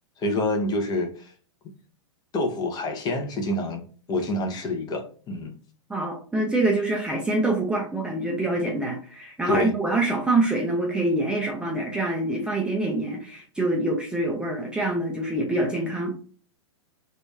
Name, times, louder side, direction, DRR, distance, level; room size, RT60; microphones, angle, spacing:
voice 1, 0.2-1.3 2.3-3.8 4.1-5.5 9.5-9.7, left 1 dB, 25° left, 0.9 m, -27 dB
voice 2, 5.9-16.2, right 2 dB, 5° right, 0.6 m, -25 dB
3.1 x 2.6 x 3.3 m
figure-of-eight pair, 105°, 16 cm